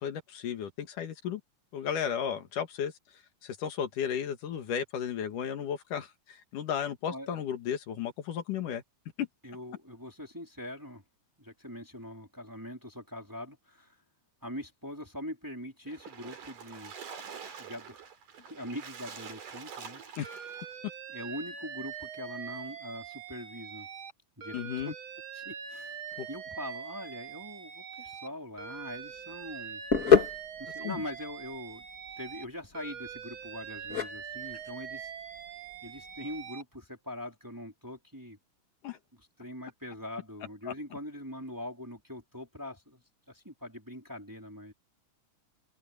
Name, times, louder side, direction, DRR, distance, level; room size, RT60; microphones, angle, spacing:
voice 1, 0.0-1.4 1.7-2.9 3.4-8.8 9.2-9.3 20.2-20.3 24.5-24.9 26.2-26.3 30.8-31.0 38.8-39.0 40.7-40.8, left 8 dB, 75° left, 3.3 m, -34 dB
voice 2, 9.4-11.0 11.4-14.0 14.4-16.9 17.6-18.0 18.5-20.0 21.1-23.9 24.4-24.6 24.8-24.9 25.3-26.0 26.3-31.8 32.2-35.1 35.4-35.5 35.8-38.4 39.4-44.7, left 1 dB, 5° right, 3.1 m, -42 dB
Splash splatter, 15.9-20.7, right 6 dB, 80° right, 4.8 m, -46 dB
Alarm, 20.2-24.1 24.4-28.3 28.6-32.4 32.7-36.6, right 7 dB, 50° right, 1.8 m, -43 dB
sound 1, 28.6-36.5, left 7 dB, 30° left, 2.5 m, -30 dB
omnidirectional pair, 3.7 m